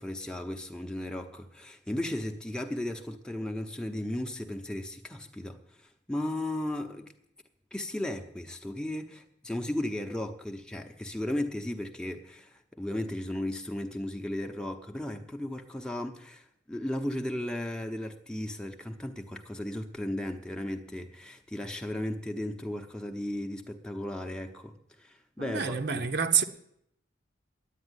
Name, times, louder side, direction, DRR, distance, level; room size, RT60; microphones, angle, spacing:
voice 1, 0.0-7.1 7.7-26.1, left 1 dB, 5° left, 0.9 m, -35 dB
voice 2, 25.4-26.4, right 7 dB, 65° right, 1.0 m, -27 dB
10.0 x 9.2 x 9.8 m
head